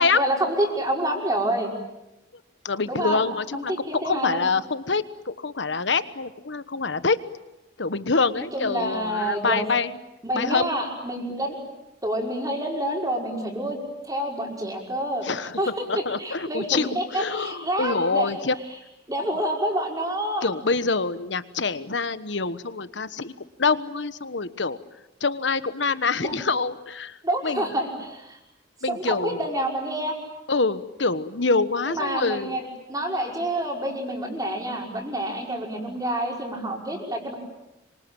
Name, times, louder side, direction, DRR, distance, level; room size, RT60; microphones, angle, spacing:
voice 1, 0.0-1.7 2.9-3.2 3.5-4.5 8.5-9.7 10.2-11.6 12.0-13.8 14.1-15.3 15.6-18.3 19.1-20.5 26.2-26.3 27.2-28.4 28.9-30.2 31.9-32.6 32.9-37.3, right 1 dB, 20° right, 1 dB, 5.4 m, -28 dB
voice 2, 2.6-7.2 7.8-10.0 10.3-10.7 15.2-18.5 20.4-23.3 23.6-24.8 25.2-27.2 27.4-27.7 28.8-29.4 30.5-32.6, left 4 dB, 70° left, 14 dB, 1.3 m, -25 dB
26.5 x 24.5 x 8.9 m, 0.92 s
head